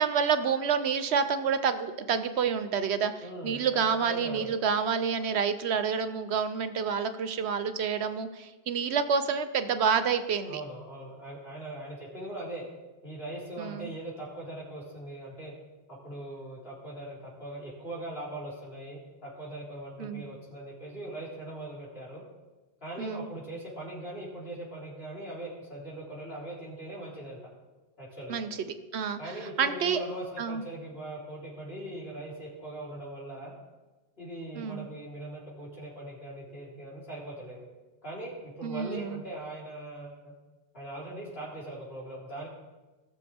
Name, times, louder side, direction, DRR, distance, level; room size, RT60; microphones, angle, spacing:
voice 1, 0.0-10.6 13.6-13.9 20.0-20.2 23.0-23.3 28.3-28.5 28.9-29.2 29.6-30.0 30.4-30.6 34.5-34.9 38.6-39.2, right 6 dB, 75° right, 10 dB, 1.0 m, -28 dB
voice 2, 3.2-4.5 10.5-12.6 13.0-15.5 15.9-22.2 22.8-27.4 28.0-28.4 29.2-33.5 34.2-37.6 38.0-40.3 40.7-42.5, right 1 dB, 60° left, -6 dB, 4.0 m, -40 dB
19.0 x 6.7 x 3.5 m, 1.2 s
omnidirectional pair, 1.1 m